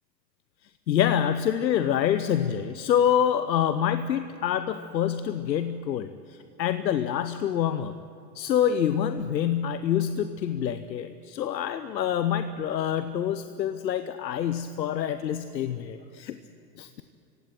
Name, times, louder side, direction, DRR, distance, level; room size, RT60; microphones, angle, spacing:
voice 1, 0.9-7.9 8.3-16.4 16.8-17.0, left 9 dB, 90° left, 11 dB, 0.9 m, -26 dB
25.5 x 16.5 x 9.2 m, 2.8 s
hypercardioid pair, 90°, 50 cm